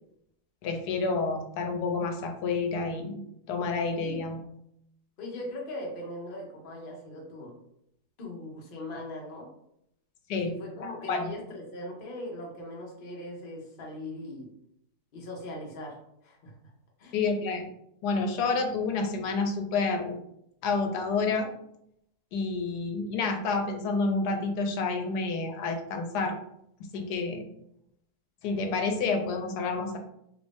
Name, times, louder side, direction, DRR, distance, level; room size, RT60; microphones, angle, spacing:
voice 1, 0.6-3.2 3.5-4.4 10.3-10.5 10.8-11.3 17.1-17.7 18.0-20.2 20.6-21.5 22.3-26.4 26.9-27.4 28.4-30.0, left 4 dB, 85° left, 4 dB, 1.2 m, -29 dB
voice 2, 5.2-7.6 8.2-9.5 10.4-14.5 15.1-16.7 17.0-17.2, left 1 dB, 45° left, -1 dB, 0.8 m, -40 dB
2.9 x 2.6 x 3.4 m, 0.76 s
omnidirectional pair, 1.7 m